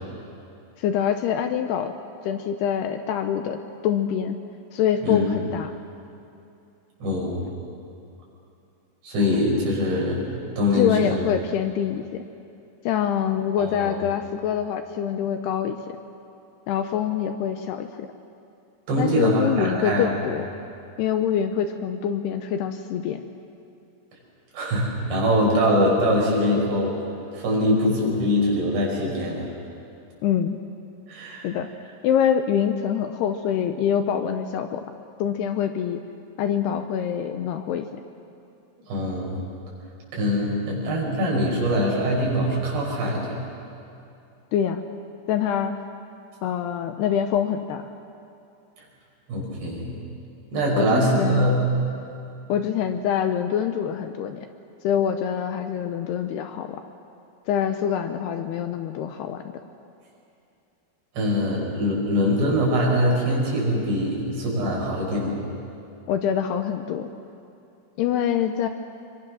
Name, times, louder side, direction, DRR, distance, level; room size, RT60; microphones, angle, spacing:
voice 1, 0.8-1.9 2.2-4.4 4.7-5.7 10.8-12.3 12.9-15.8 16.7-18.1 19.0-20.5 21.0-23.2 30.2-30.6 31.4-31.7 32.0-34.8 35.2-36.0 36.4-37.9 44.5-44.8 45.3-45.7 46.4-47.9 50.8-51.5 52.5-54.5 54.8-56.8 57.5-59.4 66.1-67.1 68.0-68.7, left 9 dB, 75° left, 7 dB, 2.6 m, -25 dB
voice 2, 7.0-7.4 9.0-10.2 10.6-11.2 13.6-13.9 18.9-20.1 24.5-27.0 27.3-29.4 31.1-31.5 38.9-39.4 40.1-43.4 49.3-49.9 50.5-51.7 61.2-65.4, equal, 70° right, -3 dB, 7.5 m, -23 dB
25.5 x 23.0 x 6.3 m, 2.7 s
omnidirectional pair, 5.2 m